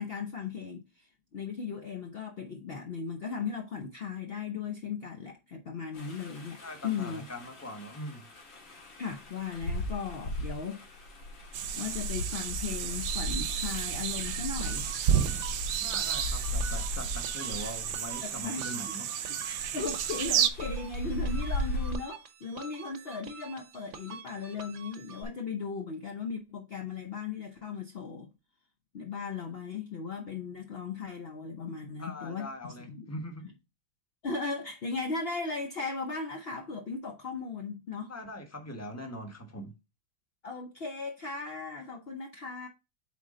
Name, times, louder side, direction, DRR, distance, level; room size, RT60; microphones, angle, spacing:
voice 1, 0.0-7.2 9.0-10.8 11.8-14.9 18.2-18.6 19.2-19.3 19.7-28.3 28.9-33.1 34.2-38.1 40.4-42.7, left 5 dB, 60° left, 0.6 m, -37 dB
sound 1, 5.9-21.9, left 1 dB, 75° left, 2.7 m, -38 dB
voice 2, 6.6-8.3 15.8-19.1 32.0-33.5 38.1-39.7, equal, 10° left, 1.0 m, -42 dB
sound 2, 11.5-20.5, right 9 dB, 70° right, 1.2 m, -32 dB
sound 3, 14.6-25.2, right 5 dB, 50° right, 1.0 m, -47 dB
8.3 x 3.8 x 3.7 m
omnidirectional pair, 2.1 m